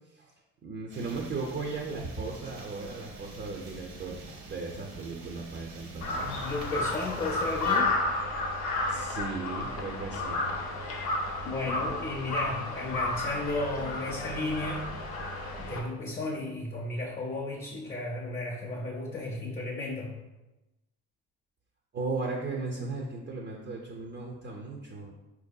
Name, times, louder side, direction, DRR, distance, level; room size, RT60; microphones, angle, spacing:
voice 1, 0.6-4.2 4.4-6.2 8.9-10.5 21.9-25.1, right 3 dB, 35° right, -1 dB, 0.5 m, -36 dB
sound 1, 0.9-7.8, right 3 dB, 80° right, 0.8 m, -46 dB
Crow, 6.0-15.8, left 2 dB, 80° left, 0.7 m, -32 dB
voice 2, 6.1-8.0 11.1-14.9 15.6-20.2, left 2 dB, 30° left, -2 dB, 0.5 m, -34 dB
4.4 x 2.7 x 2.2 m, 1.0 s
cardioid pair, 90°, 30 cm